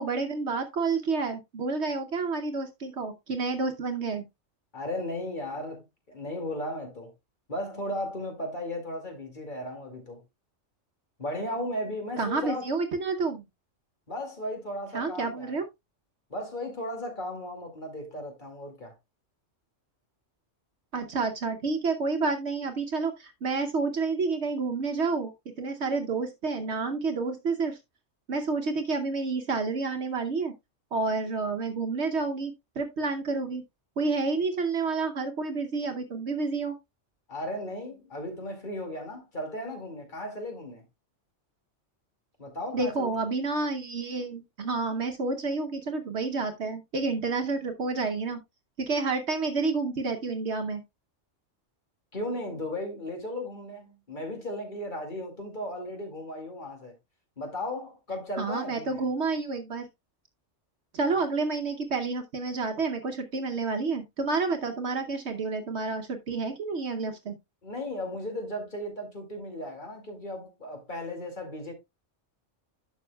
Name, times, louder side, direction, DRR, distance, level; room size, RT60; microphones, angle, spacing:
voice 1, 0.0-4.2 12.2-13.4 14.9-15.7 20.9-25.3 25.6-27.8 28.3-30.5 30.9-33.6 34.0-36.7 42.7-48.4 48.8-50.8 58.4-59.9 60.9-67.4, right 4 dB, 65° right, 1.1 m, -29 dB
voice 2, 4.7-7.1 7.5-10.2 11.2-12.7 14.1-15.6 16.3-18.9 37.3-40.8 42.4-43.1 52.1-56.9 57.4-59.0 61.1-61.2 67.6-71.7, left 1 dB, 40° left, 2.4 m, -36 dB
11.5 x 6.2 x 2.2 m
omnidirectional pair, 1.3 m